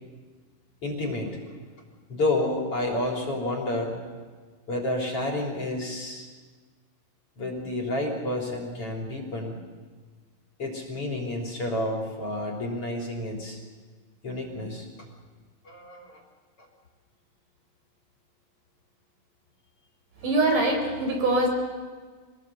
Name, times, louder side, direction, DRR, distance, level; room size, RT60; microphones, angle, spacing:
voice 1, 0.8-1.4 2.1-3.9 4.7-6.3 7.4-9.6 10.6-13.6 14.2-14.9 15.6-16.2 16.6-16.7, left 1 dB, 40° left, 2 dB, 4.3 m, -30 dB
voice 2, 20.2-21.5, right 2 dB, 60° right, 3 dB, 6.0 m, -23 dB
25.5 x 19.5 x 8.2 m, 1.4 s
omnidirectional pair, 4.2 m